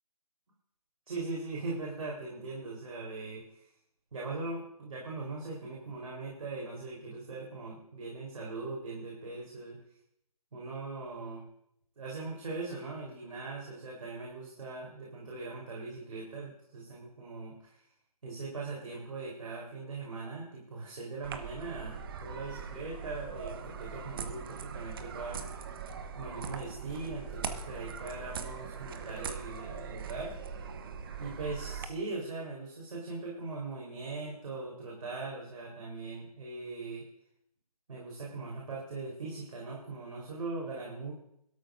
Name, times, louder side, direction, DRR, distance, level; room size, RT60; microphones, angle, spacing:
voice 1, 1.1-3.6 4.1-9.8 10.5-11.4 12.0-17.8 18.2-25.4 26.2-30.3 31.2-37.1 37.9-41.1, right 3 dB, 60° right, -3 dB, 4.0 m, -40 dB
sound 1, 21.2-31.9, right 6 dB, 35° right, 1.0 m, -41 dB
21.0 x 13.0 x 2.6 m, 0.75 s
figure-of-eight pair, 155°, 20 cm